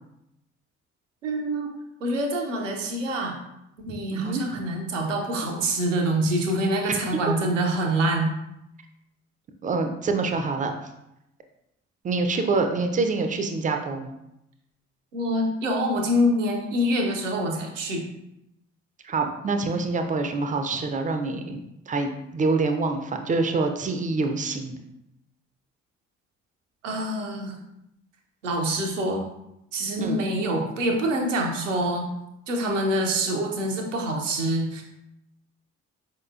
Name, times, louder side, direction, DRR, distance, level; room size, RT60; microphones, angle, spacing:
voice 1, 1.2-1.7 2.0-3.4 3.8-8.3 15.1-18.0 26.8-27.6 28.4-29.3 29.7-32.1 32.5-34.8, right 1 dB, 80° right, 1 dB, 0.6 m, -25 dB
voice 2, 3.9-4.4 9.6-10.7 12.0-14.1 19.0-24.8 30.0-30.2, right 3 dB, 20° right, 5 dB, 0.4 m, -26 dB
4.7 x 2.8 x 2.3 m, 0.84 s
figure-of-eight pair, 45°, 37 cm